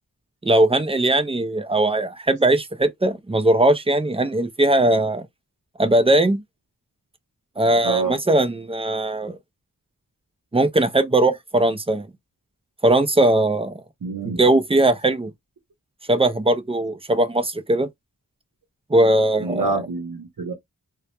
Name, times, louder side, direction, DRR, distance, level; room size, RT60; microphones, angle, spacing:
voice 1, 0.4-5.3 5.8-6.4 7.6-9.4 10.5-12.1 12.8-13.7 14.2-15.3 16.1-17.9 18.9-19.7, right 1 dB, 15° right, 0.4 m, -19 dB
voice 2, 7.8-8.2 14.0-14.4 19.4-20.5, right 4 dB, 75° right, 0.7 m, -26 dB
2.2 x 2.0 x 2.9 m
wide cardioid pair, 45°, 35 cm